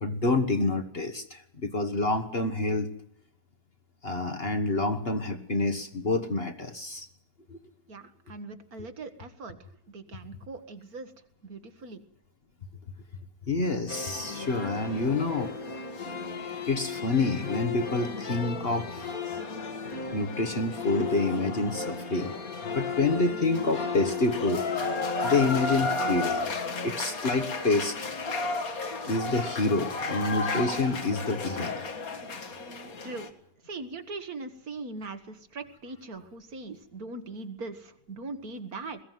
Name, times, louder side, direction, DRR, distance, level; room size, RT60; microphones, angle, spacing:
voice 1, 0.0-2.9 4.0-7.1 7.5-7.6 13.5-15.5 16.7-19.2 20.1-22.3 22.7-24.6 25.2-26.5 26.8-28.0 29.1-31.9, left 3 dB, 40° left, 8 dB, 1.5 m, -28 dB
voice 2, 7.9-9.6 9.9-11.1 11.4-12.0 33.0-33.3 33.6-39.0, right 3 dB, 65° right, 9 dB, 2.0 m, -40 dB
sound 1, 13.9-33.3, left 4 dB, 65° left, 2.3 m, -33 dB
21.5 x 15.5 x 9.3 m, 0.77 s
omnidirectional pair, 1.7 m